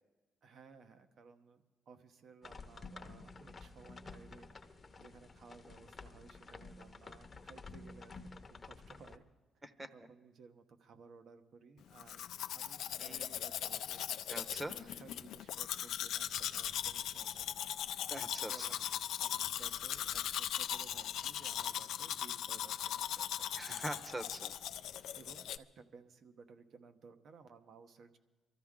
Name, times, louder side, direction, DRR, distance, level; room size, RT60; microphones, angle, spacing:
voice 1, 0.4-9.2 9.9-12.3 12.5-14.1 14.7-17.7 18.4-18.8 19.2-23.5 25.1-28.2, right 5 dB, 60° right, 8 dB, 1.0 m, -58 dB
sound 1, 2.4-9.2, left 3 dB, 30° left, 0.8 m, -52 dB
Domestic sounds home sounds, 12.0-25.6, left 11 dB, 80° left, 0.4 m, -39 dB
voice 2, 13.0-13.5 14.3-14.8 18.1-18.7 23.5-24.5, right 1 dB, 20° right, 10 dB, 1.0 m, -43 dB
23.0 x 13.5 x 3.7 m, 1.2 s
cardioid pair, 90°, 0 cm